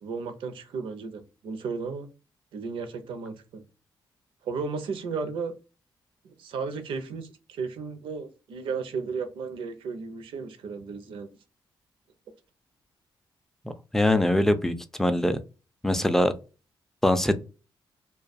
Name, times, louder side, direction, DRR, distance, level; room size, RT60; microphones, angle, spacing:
voice 1, 0.0-2.1 2.5-3.6 4.4-5.5 6.2-11.3, right 5 dB, 85° right, 0.6 m, -34 dB
voice 2, 13.9-15.4 15.8-16.3 17.0-17.4, left 1 dB, 5° left, 0.3 m, -22 dB
2.2 x 2.2 x 2.5 m
cardioid pair, 110°, 9 cm